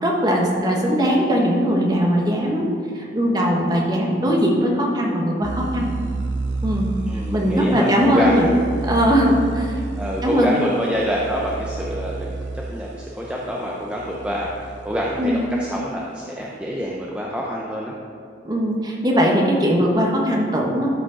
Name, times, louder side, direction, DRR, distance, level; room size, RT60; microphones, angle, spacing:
voice 1, 0.0-2.7 2.9-5.9 6.6-6.9 7.3-8.5 8.8-9.7 10.2-10.5 15.2-15.4 18.4-20.9, equal, 20° right, -1 dB, 1.1 m, -20 dB
sound 1, 5.4-15.9, right 3 dB, 85° right, 0.7 m, -31 dB
voice 2, 7.1-8.5 10.0-12.3 12.7-17.9, equal, 5° right, -4 dB, 0.6 m, -26 dB
12.5 x 5.0 x 3.8 m, 2.3 s
head